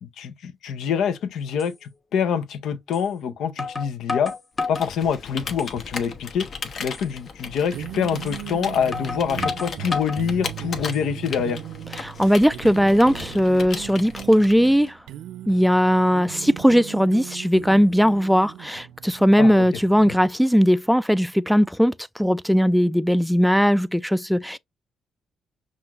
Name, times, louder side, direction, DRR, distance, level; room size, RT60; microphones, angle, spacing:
voice 1, 0.0-4.3 4.7-6.5 6.8-11.6 19.4-19.7 20.1-20.2, left 7 dB, 75° left, 0.6 m, -26 dB
sound 1, 1.6-1.7 2.9-3.1 3.6-4.9 5.4-6.0 6.3-6.4 6.9-7.1 8.3-8.4 8.9-10.2 10.7-11.3, left 3 dB, 30° left, 1.3 m, -31 dB
Computer keyboard, 4.6-14.9, left 5 dB, 55° left, 1.0 m, -36 dB
sound 2, 7.6-20.3, right 12 dB, 85° right, 0.4 m, -38 dB
voice 2, 12.0-15.0 15.5-24.6, equal, ahead, 0.3 m, -19 dB
5.6 x 2.5 x 2.9 m
cardioid pair, 90°, 0 cm